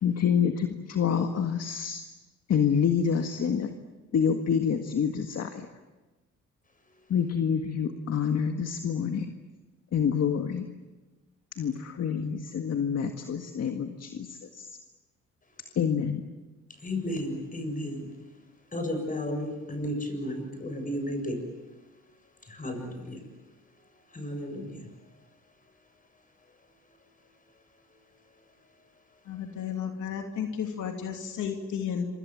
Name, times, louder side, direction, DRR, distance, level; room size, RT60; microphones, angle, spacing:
voice 1, 0.0-2.0 2.5-3.7 4.1-5.7 7.1-9.3 9.9-10.7 11.6-14.8 15.8-16.2, left 7 dB, 55° left, 6 dB, 1.8 m, -27 dB
voice 2, 16.8-18.1 18.7-21.4 22.4-23.2 24.1-24.9, left 1 dB, 25° left, 6 dB, 7.4 m, -33 dB
voice 3, 29.3-32.1, left 7 dB, 80° left, 3 dB, 2.9 m, -33 dB
27.0 x 25.0 x 7.7 m, 1.2 s
cardioid pair, 90°, 30 cm